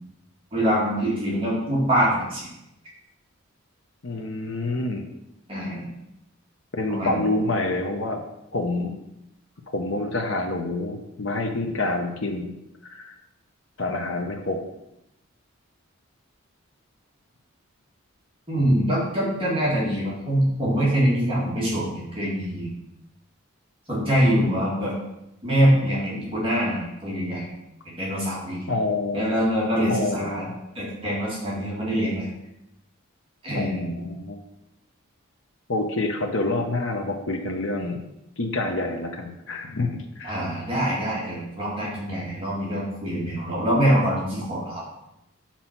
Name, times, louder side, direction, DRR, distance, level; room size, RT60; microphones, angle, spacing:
voice 1, 0.5-2.5 5.5-5.9 6.9-7.3 18.5-22.7 23.9-24.9 25.4-27.5 27.9-28.6 29.1-32.3 33.4-34.1 40.2-44.8, equal, 25° right, -6 dB, 1.9 m, -24 dB
voice 2, 4.0-5.1 6.7-8.2 8.5-8.9 9.7-12.5 12.9-13.1 13.8-14.6 28.7-29.4 29.9-30.5 33.5-34.4 35.7-38.1 38.4-40.4, left 2 dB, 65° left, 3 dB, 0.8 m, -27 dB
6.1 x 4.2 x 5.7 m, 0.87 s
head